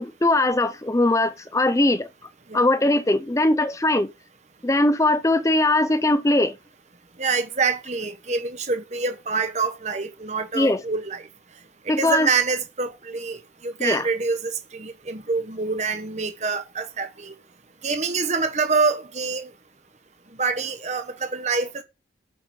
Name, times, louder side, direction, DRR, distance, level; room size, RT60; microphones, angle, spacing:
voice 1, 0.0-2.1 2.5-4.1 4.6-6.5 10.5-10.8 11.9-12.3 13.8-14.0, left 2 dB, 15° left, 0.7 m, -20 dB
voice 2, 7.2-11.2 11.9-17.3 17.8-19.5 20.4-21.8, right 4 dB, 40° right, 1.1 m, -26 dB
8.9 x 5.8 x 6.9 m
head